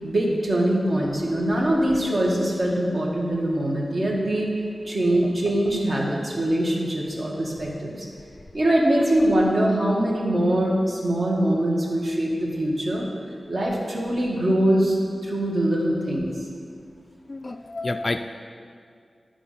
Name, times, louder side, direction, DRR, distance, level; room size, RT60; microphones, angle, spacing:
voice 1, 0.0-4.5 4.9-8.1 8.5-13.1 13.5-16.5, right 1 dB, 50° right, -3 dB, 1.4 m, -23 dB
voice 2, 17.3-18.3, left 2 dB, 35° left, 6 dB, 0.3 m, -29 dB
10.5 x 3.8 x 5.5 m, 2.2 s
wide cardioid pair, 100°, 0 cm